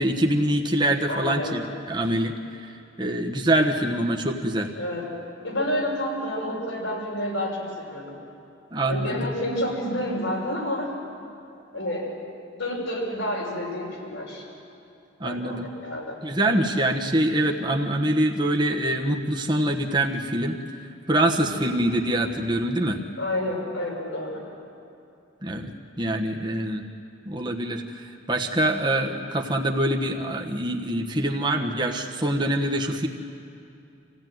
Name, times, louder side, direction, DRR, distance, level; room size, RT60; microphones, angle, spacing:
voice 1, 0.0-2.3 3.0-4.7 8.7-9.3 15.2-15.7 16.2-20.6 21.1-23.0 25.4-25.7 26.0-26.8 27.3-33.1, right 1 dB, 20° right, 1 dB, 1.3 m, -24 dB
voice 2, 1.1-1.5 4.7-5.1 5.4-8.1 8.9-10.9 11.7-12.1 12.5-14.4 15.2-16.1 21.4-21.5 23.2-24.4, left 1 dB, 85° left, -2 dB, 6.3 m, -29 dB
27.0 x 16.0 x 9.4 m, 2.7 s
head